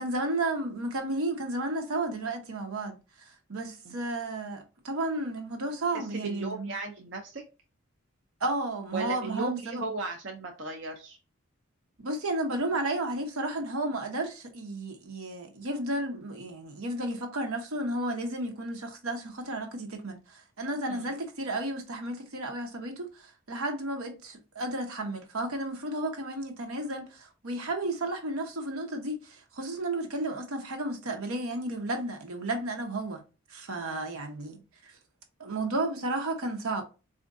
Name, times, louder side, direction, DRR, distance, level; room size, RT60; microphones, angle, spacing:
voice 1, 0.0-3.0 3.5-6.7 8.4-9.9 12.0-33.2 33.5-34.9 35.4-36.8, right 2 dB, 80° right, 0.9 m, -33 dB
voice 2, 5.9-7.4 8.9-11.2 20.9-21.1 33.8-34.0, right 3 dB, 55° right, 0.6 m, -36 dB
4.3 x 2.5 x 2.5 m
head